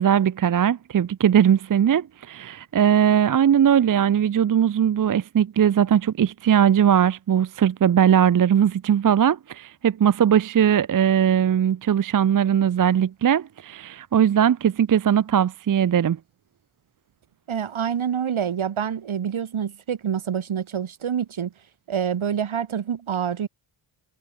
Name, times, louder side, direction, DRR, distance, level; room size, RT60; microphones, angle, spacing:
voice 1, 0.0-16.2, right 9 dB, 40° right, 0.6 m, -19 dB
voice 2, 17.5-21.5 21.9-23.5, right 8 dB, 70° right, 2.4 m, -27 dB
wide cardioid pair, 90°, 50 cm